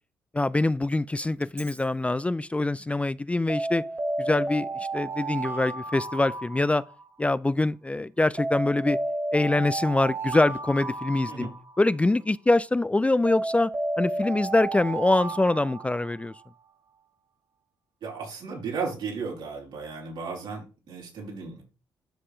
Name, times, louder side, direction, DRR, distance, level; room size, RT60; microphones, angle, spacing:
voice 1, 0.3-3.8 4.2-6.8 7.2-9.0 9.3-11.5 11.8-13.7 14.0-16.3, left 2 dB, 15° left, 0.4 m, -24 dB
Alarm, 1.4-1.8 3.5-7.3 8.4-12.1 13.2-16.5, right 2 dB, 30° right, 2.3 m, -32 dB
voice 2, 18.0-21.6, right 4 dB, 70° right, 4.1 m, -35 dB
12.5 x 4.2 x 3.3 m
hypercardioid pair, 50°, 8 cm